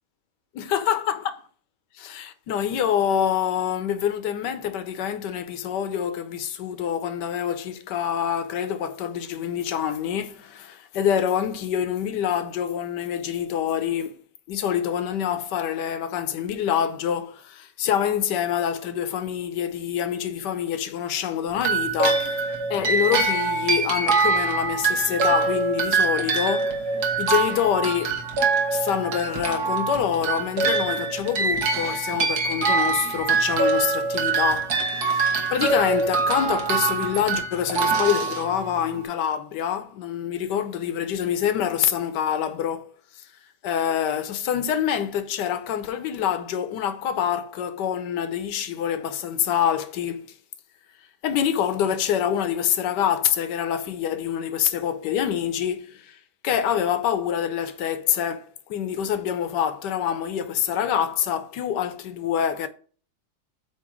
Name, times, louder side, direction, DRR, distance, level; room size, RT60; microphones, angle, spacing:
voice 1, 0.6-1.2 1.9-14.2 14.5-22.4 22.7-26.9 27.2-28.2 28.7-43.3 43.6-50.3 51.2-56.2 56.4-62.7, left 9 dB, 80° left, 1.4 m, -26 dB
sound 1, 21.6-39.0, right 4 dB, 65° right, 1.8 m, -24 dB
8.5 x 3.0 x 6.2 m
omnidirectional pair, 1.8 m